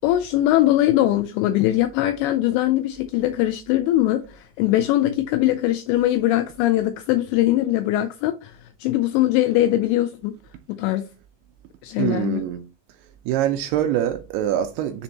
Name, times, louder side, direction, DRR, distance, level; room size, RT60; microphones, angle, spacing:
voice 1, 0.0-10.3 10.7-11.1 11.8-12.4, left 14 dB, 85° left, 2.7 m, -21 dB
voice 2, 12.0-12.6 13.3-15.0, right 11 dB, 85° right, 2.3 m, -24 dB
10.0 x 3.4 x 2.9 m
omnidirectional pair, 5.2 m